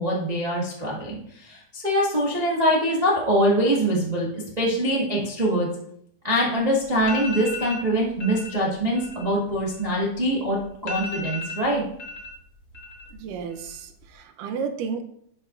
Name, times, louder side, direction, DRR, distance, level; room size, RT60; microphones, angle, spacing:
voice 1, 0.0-5.7 6.2-11.8, equal, 45° right, -6 dB, 0.5 m, -23 dB
sound 1, 6.6-6.7 7.0-7.8 8.2-8.5 8.8-10.3 10.6-10.7 10.9-12.3 12.6-13.2 13.5-14.0, left 2 dB, 35° left, 1.6 m, -35 dB
voice 2, 13.1-15.0, right 6 dB, 85° right, 6 dB, 2.3 m, -32 dB
10.5 x 5.6 x 2.5 m, 0.70 s
omnidirectional pair, 3.7 m